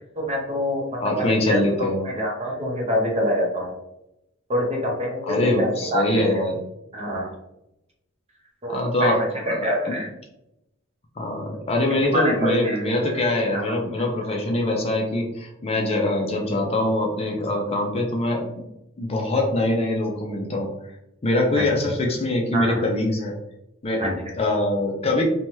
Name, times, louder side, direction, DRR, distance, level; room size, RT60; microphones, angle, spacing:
voice 1, 0.2-3.7 4.5-6.3 6.9-7.3 8.6-9.1 9.5-10.1 12.1-12.8 13.1-13.2 13.5-13.8 22.5-22.8 24.0-24.1, equal, 30° right, -2 dB, 0.8 m, -26 dB
voice 2, 1.0-2.1 5.2-6.6 8.7-9.2 9.5-10.0 11.2-18.6 19.0-20.7 21.2-23.4 23.8-25.2, left 1 dB, 30° left, 1 dB, 0.4 m, -23 dB
2.8 x 2.2 x 3.0 m, 0.86 s
head